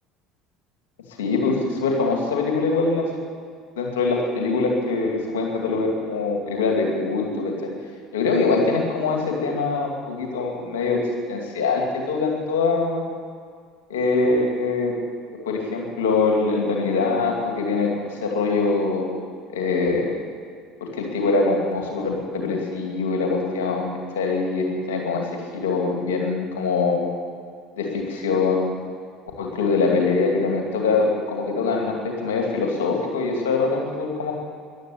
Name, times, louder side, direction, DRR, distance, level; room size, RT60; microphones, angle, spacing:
voice 1, 1.2-3.1 3.8-7.5 8.1-11.0 11.3-13.0 13.9-14.9 15.5-19.2 19.5-20.1 20.8-23.9 24.1-25.2 25.5-27.2 27.8-28.7 29.4-34.3, left 4 dB, 80° left, 1 dB, 2.4 m, -23 dB
14.5 x 11.5 x 8.6 m, 2.1 s
hypercardioid pair, 70°, 0 cm